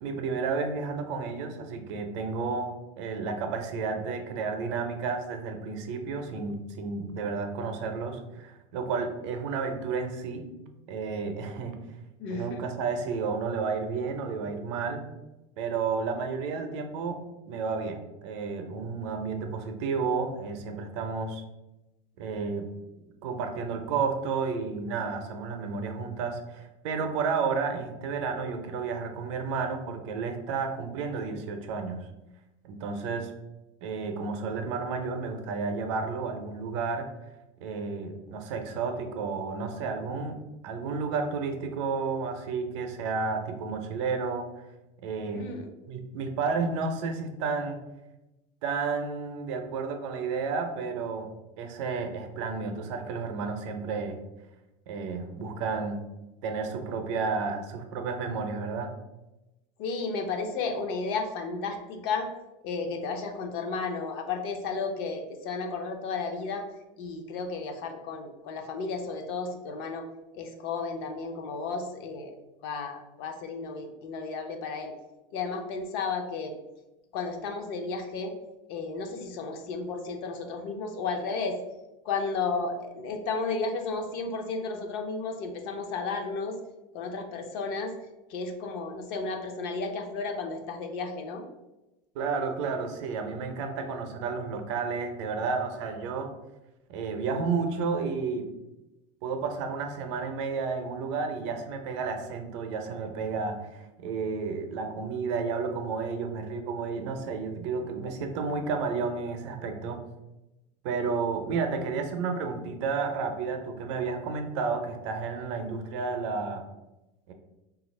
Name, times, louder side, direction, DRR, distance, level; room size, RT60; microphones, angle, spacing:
voice 1, 0.0-10.4 10.9-11.8 12.3-15.0 15.6-17.2 17.5-21.4 22.2-22.7 23.2-32.1 32.6-33.3 33.8-37.1 37.6-40.4 40.6-44.5 45.0-45.5 45.9-47.8 48.6-51.3 51.6-54.2 54.9-56.0 56.4-58.9 92.1-96.3 96.9-98.5 99.2-110.0 110.8-116.6 117.3-117.4, right 4 dB, 65° right, 6 dB, 0.5 m, -31 dB
voice 2, 12.2-12.6 45.3-45.7 59.8-62.3 62.6-66.6 67.0-70.1 70.3-72.4 72.6-74.9 75.3-76.5 77.1-78.3 78.7-81.6 82.0-86.6 86.9-87.9 88.3-91.4, left 4 dB, 55° left, 5 dB, 0.5 m, -33 dB
3.2 x 2.4 x 3.1 m, 0.98 s
supercardioid pair, 160°, 16 cm